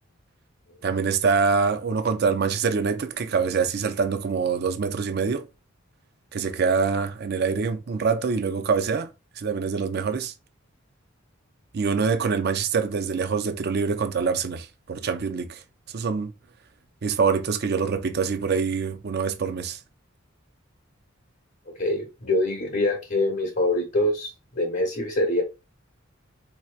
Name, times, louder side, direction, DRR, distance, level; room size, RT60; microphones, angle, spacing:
voice 1, 0.8-5.5 6.3-9.1 9.4-10.3 11.7-15.6 15.9-16.3 17.0-19.8, right 5 dB, 55° right, 0.5 m, -25 dB
voice 2, 21.8-25.4, left 1 dB, 50° left, 1.1 m, -24 dB
4.3 x 2.8 x 2.4 m
head